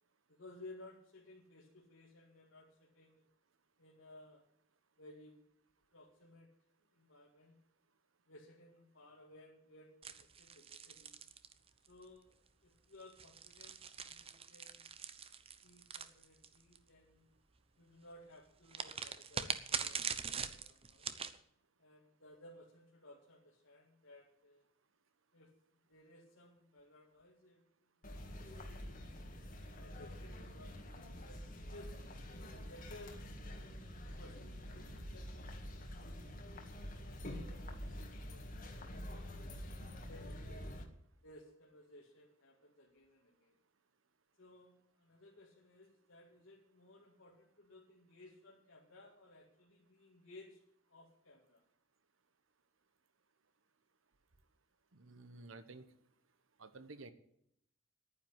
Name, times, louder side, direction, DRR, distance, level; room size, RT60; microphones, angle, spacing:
voice 1, 0.3-3.2 3.8-4.4 5.0-5.4 5.9-6.5 6.9-7.6 8.3-11.2 11.9-14.9 15.6-17.3 17.8-21.2 21.8-24.7 25.3-25.5 25.9-28.1 28.6-29.3 29.8-33.5 34.0-39.3 39.8-40.4 41.2-43.5 44.4-50.6 50.9-51.6, left 2 dB, 75° left, -2 dB, 2.3 m, -59 dB
sound 1, 10.0-12.0 13.0-16.8 18.7-21.4, right 7 dB, 30° right, 0.8 m, -42 dB
sound 2, 28.0-40.8, equal, 40° left, 2.0 m, -47 dB
voice 2, 54.9-55.8 56.6-57.1, right 3 dB, 75° right, 11 dB, 1.1 m, -52 dB
11.0 x 9.8 x 8.0 m, 0.71 s
head